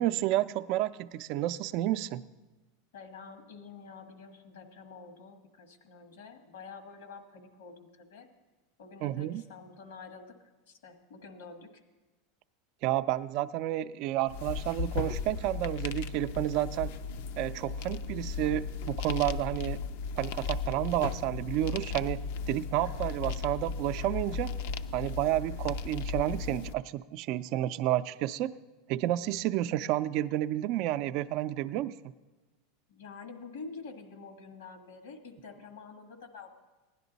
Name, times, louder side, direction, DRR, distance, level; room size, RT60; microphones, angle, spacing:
voice 1, 0.0-2.2 9.0-9.4 12.8-16.9 17.4-19.8 20.2-22.2 22.5-24.5 24.9-28.5 28.9-31.9, right 14 dB, 55° right, 13 dB, 0.4 m, -30 dB
voice 2, 2.9-8.3 8.8-11.8 32.9-36.5, left 4 dB, 85° left, 7 dB, 1.5 m, -48 dB
sound 1, 14.3-26.7, left 5 dB, 70° left, 0.5 m, -36 dB
16.0 x 11.0 x 4.0 m, 1.2 s
supercardioid pair, 125°, 0 cm